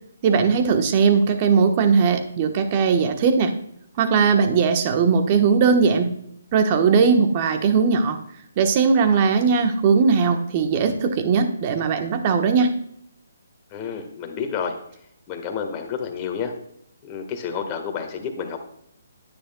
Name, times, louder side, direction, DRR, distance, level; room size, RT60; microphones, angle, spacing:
voice 1, 0.2-3.5 4.0-6.1 6.5-8.2 8.6-12.7, right 5 dB, 35° right, 6 dB, 1.2 m, -19 dB
voice 2, 13.7-14.7 15.3-16.5 17.1-18.6, left 6 dB, 25° left, 4 dB, 1.5 m, -29 dB
10.0 x 9.8 x 2.3 m, 0.72 s
hypercardioid pair, 150°, 0 cm